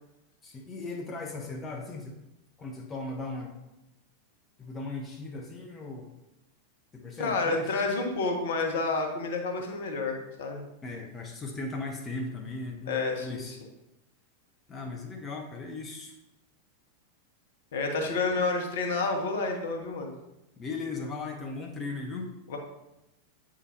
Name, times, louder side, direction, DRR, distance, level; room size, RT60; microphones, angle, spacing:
voice 1, 0.4-2.2 2.6-3.6 4.6-6.2 6.9-7.7 10.8-13.6 14.7-16.2 20.6-22.3, left 3 dB, 20° left, 1 dB, 0.9 m, -37 dB
voice 2, 7.2-10.6 12.9-13.4 17.7-20.1 22.5-22.6, left 3 dB, 60° left, 3 dB, 1.2 m, -29 dB
8.3 x 5.0 x 2.9 m, 0.91 s
figure-of-eight pair, 90°, 0 cm